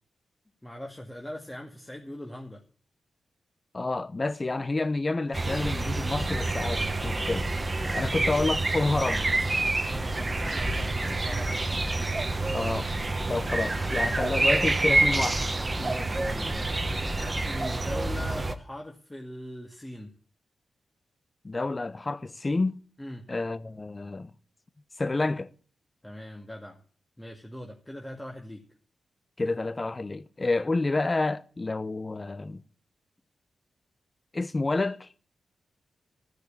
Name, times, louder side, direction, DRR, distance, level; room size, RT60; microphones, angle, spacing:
voice 1, 0.6-2.6 7.8-8.3 9.8-11.8 13.7-13.9 15.8-16.7 17.1-20.1 23.0-23.3 26.0-26.8 27.2-28.6, left 1 dB, 10° left, 2.1 m, -41 dB
voice 2, 3.7-7.5 7.9-9.3 12.5-12.9 13.3-15.4 21.4-22.8 23.3-24.3 25.0-25.5 29.4-32.6 34.3-35.1, left 3 dB, 30° left, 0.9 m, -29 dB
sound 1, 5.3-18.5, right 2 dB, 30° right, 1.3 m, -27 dB
14.0 x 6.5 x 8.6 m
cardioid pair, 60°, 0 cm